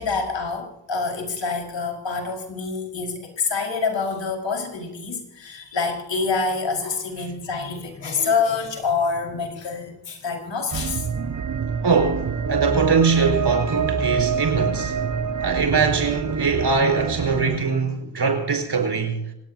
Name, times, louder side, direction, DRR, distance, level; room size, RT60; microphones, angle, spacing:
voice 1, 0.0-11.1, left 4 dB, 60° left, 5.1 m, -26 dB
sound 1, 10.7-17.6, right 6 dB, 35° right, 1.1 m, -26 dB
voice 2, 11.8-15.0 15.4-19.2, right 5 dB, 50° right, 5.4 m, -22 dB
26.5 x 18.0 x 2.8 m
supercardioid pair, 45°, 50 cm